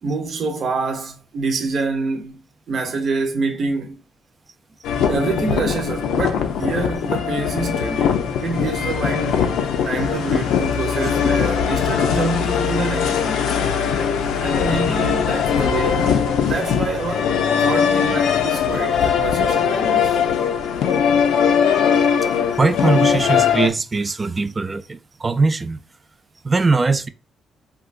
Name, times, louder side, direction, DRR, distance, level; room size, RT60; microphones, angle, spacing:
voice 1, 0.0-2.4 2.7-4.0 5.1-9.4 9.8-13.5 14.4-16.1 16.4-20.2, right 4 dB, 55° right, 0.7 m, -26 dB
sound 1, 4.8-23.7, left 7 dB, 85° left, 0.5 m, -20 dB
voice 2, 22.5-25.8 26.4-27.1, right 3 dB, 30° right, 0.3 m, -20 dB
3.8 x 2.3 x 2.4 m
cardioid pair, 90°, 0 cm